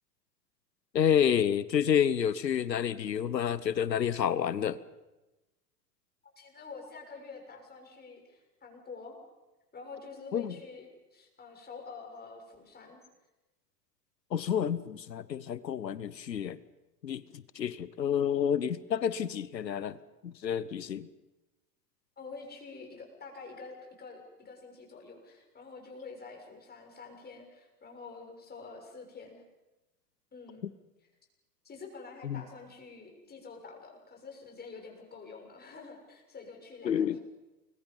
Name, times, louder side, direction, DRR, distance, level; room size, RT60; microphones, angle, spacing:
voice 1, 0.9-4.8 10.3-10.6 14.3-16.6 17.0-20.0 20.2-21.1 30.6-30.7 32.2-32.4 36.8-37.2, left 8 dB, 85° left, 17 dB, 1.1 m, -29 dB
voice 2, 6.4-9.2 9.7-13.0 22.2-29.4 30.3-30.7 31.6-37.2, left 4 dB, 20° left, 1 dB, 6.8 m, -47 dB
29.0 x 22.0 x 5.6 m, 1.0 s
hypercardioid pair, 95°, 49 cm